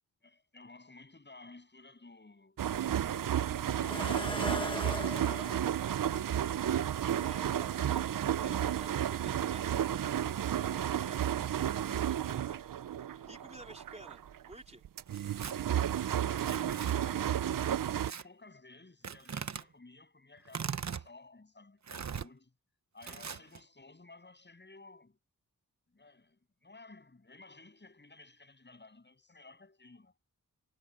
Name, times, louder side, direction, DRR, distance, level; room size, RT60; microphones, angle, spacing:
voice 1, 0.2-6.7 7.8-8.1 16.2-22.5 22.9-25.2 25.9-30.1, left 3 dB, 30° left, 7.9 m, -56 dB
sound 1, 2.6-14.5 14.8-18.1, right 10 dB, 70° right, 0.6 m, -32 dB
sound 2, 3.8-5.6 6.8-6.9 7.5-7.6, left 2 dB, 15° left, 1.3 m, -38 dB
voice 2, 7.1-12.6 13.0-14.8, right 2 dB, 20° right, 4.0 m, -53 dB
Tearing, 15.1-15.5 16.4-16.9 18.0-18.2 19.0-19.6 20.5-21.1 21.9-22.3 23.0-23.6, right 7 dB, 55° right, 1.0 m, -40 dB
wide cardioid pair, 130°, 34 cm